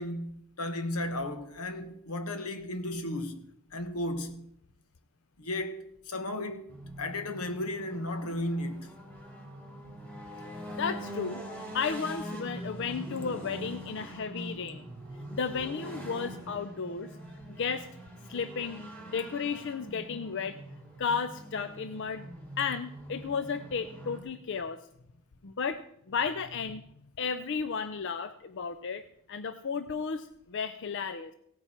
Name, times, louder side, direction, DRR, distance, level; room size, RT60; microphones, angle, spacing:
voice 1, 0.0-3.5 3.7-4.5 5.4-6.7 7.0-9.0, left 1 dB, 80° left, 1.3 m, -34 dB
sound 1, 6.7-24.2, equal, 10° left, 3.2 m, -43 dB
voice 2, 10.8-14.8 15.3-17.1 17.5-17.9 18.3-20.6 21.0-22.2 22.6-24.8 25.4-25.8 26.1-26.8 27.2-31.3, left 5 dB, 55° left, 0.5 m, -33 dB
17.0 x 9.0 x 4.4 m
head